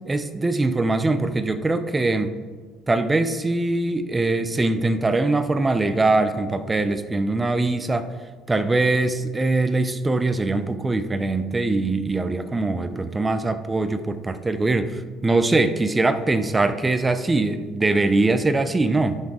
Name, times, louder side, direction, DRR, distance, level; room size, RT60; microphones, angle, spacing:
voice 1, 0.1-2.3 2.9-8.1 8.5-19.2, right 2 dB, 15° right, 11 dB, 0.5 m, -22 dB
11.0 x 6.1 x 3.6 m, 1.5 s
supercardioid pair, 100°, 0 cm